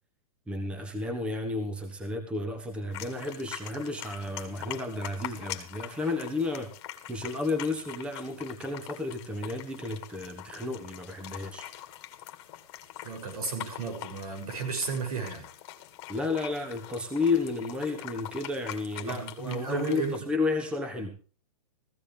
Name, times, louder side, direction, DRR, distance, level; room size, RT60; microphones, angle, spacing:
voice 1, 0.5-6.7 7.1-11.7 16.1-21.1, left 3 dB, 5° right, 7 dB, 1.2 m, -32 dB
sound 1, 2.9-20.2, left 13 dB, 30° left, 1.8 m, -44 dB
voice 2, 13.0-15.5 19.1-20.2, right 4 dB, 70° right, 6 dB, 6.7 m, -33 dB
16.0 x 15.0 x 3.3 m, 0.38 s
hypercardioid pair, 160°, 20 cm